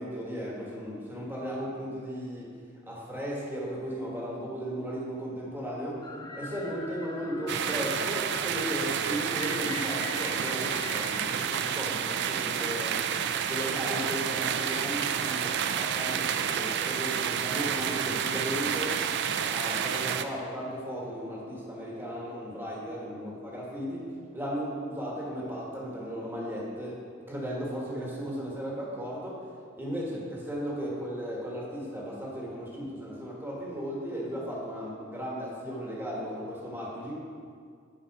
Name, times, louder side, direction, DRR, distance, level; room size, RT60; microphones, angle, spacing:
voice 1, 0.0-2.5 2.8-6.0 6.3-13.0 13.4-19.0 19.5-29.5 29.7-37.1, equal, 10° right, -5 dB, 1.6 m, -36 dB
sound 1, 6.0-11.2, left 2 dB, 20° left, 0.5 m, -40 dB
sound 2, 7.5-20.2, right 8 dB, 60° right, 0.4 m, -30 dB
9.1 x 4.8 x 4.8 m, 2.1 s
head